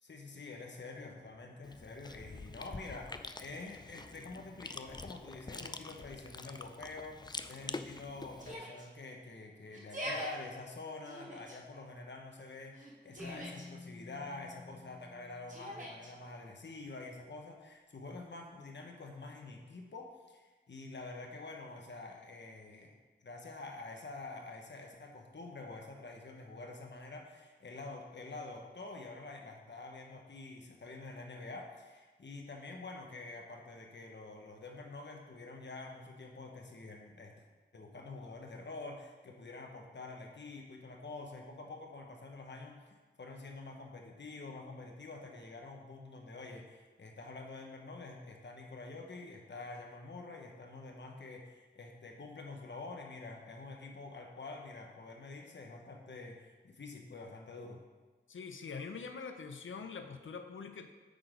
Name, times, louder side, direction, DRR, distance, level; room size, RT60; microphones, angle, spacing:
voice 1, 0.0-7.2 7.5-22.9 23.2-37.5 37.7-57.8, left 3 dB, 65° left, 2 dB, 1.2 m, -47 dB
Chewing mastication, 1.6-8.5, left 3 dB, 20° left, 0.4 m, -46 dB
Yell, 8.4-8.9 9.7-10.3 11.0-11.6 12.7-13.7 15.5-16.1, equal, 40° right, 1.8 m, -43 dB
Keyboard (musical), 13.2-16.4, left 3 dB, 5° right, 1.6 m, -52 dB
voice 2, 58.3-60.9, left 5 dB, 85° left, 6 dB, 0.6 m, -44 dB
8.6 x 4.0 x 5.1 m, 1.3 s
cardioid pair, 50°, 20 cm